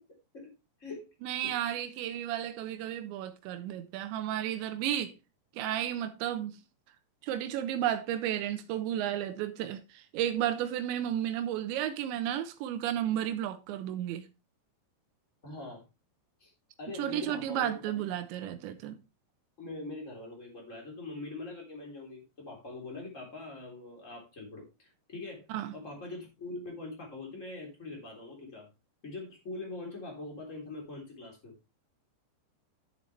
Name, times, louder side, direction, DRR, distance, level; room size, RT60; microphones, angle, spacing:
voice 1, 1.2-5.1 5.6-6.6 7.2-14.3 17.0-19.0 25.5-25.7, right 11 dB, 90° right, 3.2 m, -33 dB
voice 2, 15.4-15.8 16.4-16.5 16.8-18.0 19.6-25.4 25.7-28.7 29.0-31.5, left 2 dB, 20° left, 3.3 m, -43 dB
11.0 x 7.3 x 3.2 m
omnidirectional pair, 5.1 m